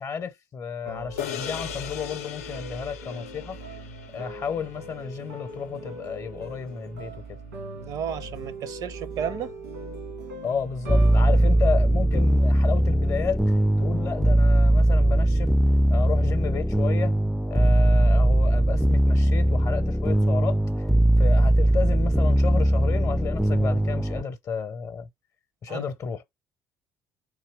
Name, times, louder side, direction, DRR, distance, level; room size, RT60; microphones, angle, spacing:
voice 1, 0.0-3.6 4.1-7.1 10.4-15.5 15.9-17.1 17.5-20.6 21.2-25.1 25.6-26.2, left 6 dB, 45° left, 0.6 m, -32 dB
sound 1, 0.9-13.0, right 1 dB, 85° right, 1.5 m, -40 dB
sound 2, 1.2-5.8, left 10 dB, 80° left, 0.4 m, -39 dB
voice 2, 7.7-9.5 25.7-25.8, right 8 dB, 55° right, 0.6 m, -33 dB
sound 3, 10.9-24.2, right 1 dB, ahead, 0.3 m, -20 dB
3.8 x 2.8 x 4.5 m
hypercardioid pair, 60°, 8 cm